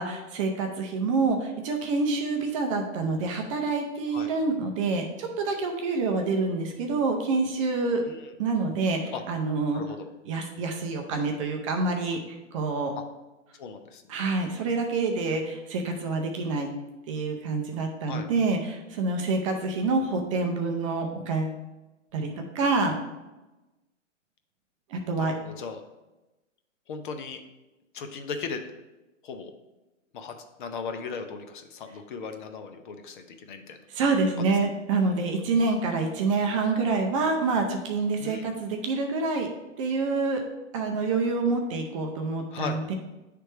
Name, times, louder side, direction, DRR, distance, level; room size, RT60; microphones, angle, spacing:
voice 1, 0.0-8.0 8.4-9.8 10.3-12.9 14.1-16.7 17.1-21.6 22.1-22.9 24.9-25.3 33.9-39.5 39.8-40.4 40.7-42.9, right 3 dB, 25° right, 3 dB, 0.5 m, -27 dB
voice 2, 9.7-10.1 13.6-14.0 18.0-18.3 25.2-25.8 26.9-27.4 27.9-28.6 29.2-29.5 30.1-33.8 38.2-38.5 42.5-42.8, left 5 dB, 40° left, 6 dB, 0.6 m, -37 dB
10.0 x 3.4 x 3.2 m, 1.0 s
hypercardioid pair, 140°, 38 cm